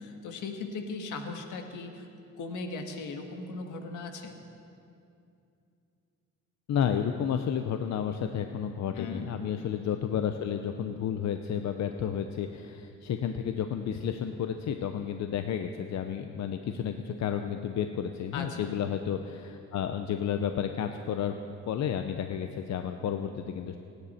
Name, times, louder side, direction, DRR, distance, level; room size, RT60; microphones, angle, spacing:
voice 1, 0.0-2.1 2.4-4.3 8.9-9.3 18.3-18.8, left 3 dB, 80° left, 4 dB, 1.6 m, -38 dB
voice 2, 6.7-21.4 21.7-23.8, left 8 dB, 65° left, 7 dB, 0.8 m, -31 dB
26.5 x 10.0 x 4.3 m, 2.6 s
cardioid pair, 90°, 30 cm